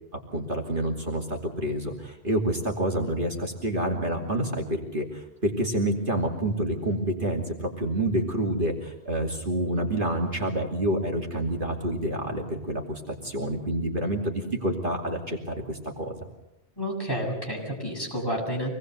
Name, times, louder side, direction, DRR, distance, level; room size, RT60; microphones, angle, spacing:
voice 1, 0.3-16.2, right 1 dB, 50° right, 0 dB, 2.9 m, -28 dB
voice 2, 16.8-18.7, equal, 20° left, -2 dB, 7.7 m, -30 dB
26.0 x 19.5 x 8.1 m, 0.84 s
omnidirectional pair, 1.2 m